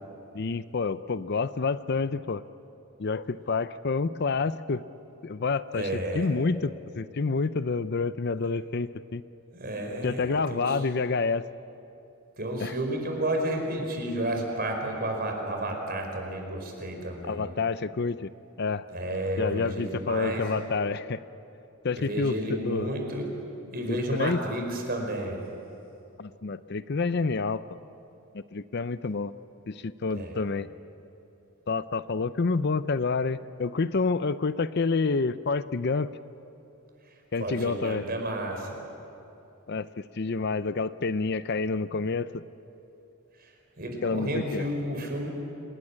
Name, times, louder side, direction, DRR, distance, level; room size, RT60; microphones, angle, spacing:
voice 1, 0.3-2.4 3.0-4.8 5.2-5.9 6.1-9.2 10.0-11.4 12.6-12.7 17.3-18.3 18.6-18.9 19.4-21.2 21.8-22.9 23.9-24.4 26.2-27.7 28.3-29.3 29.7-30.7 31.7-36.1 37.3-38.0 39.7-39.9 40.1-42.4 44.0-44.7, left 4 dB, 50° left, 14 dB, 0.5 m, -28 dB
voice 2, 5.7-6.3 9.5-10.8 12.4-17.5 18.9-20.5 22.0-23.3 23.7-25.4 30.1-30.4 37.4-38.8 43.4-43.5 43.8-45.3, right 1 dB, 45° right, 2 dB, 5.0 m, -31 dB
27.5 x 19.5 x 9.9 m, 2.8 s
head